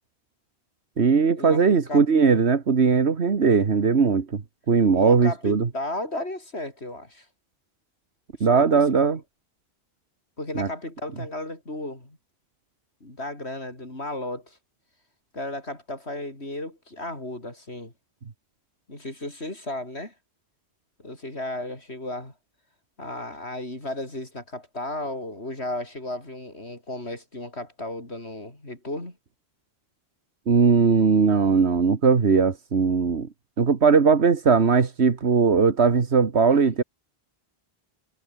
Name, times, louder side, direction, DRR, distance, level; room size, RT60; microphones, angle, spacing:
voice 1, 1.0-4.4 4.7-5.7 8.4-9.2 10.6-10.7 30.5-33.3 33.6-36.8, right 5 dB, 85° right, 1.9 m, -19 dB
voice 2, 4.9-7.3 8.4-9.2 10.4-12.2 13.0-14.6 15.3-17.9 18.9-20.1 21.0-22.3 23.0-29.2, left 1 dB, 80° left, 6.6 m, -34 dB
omnidirectional pair, 1.1 m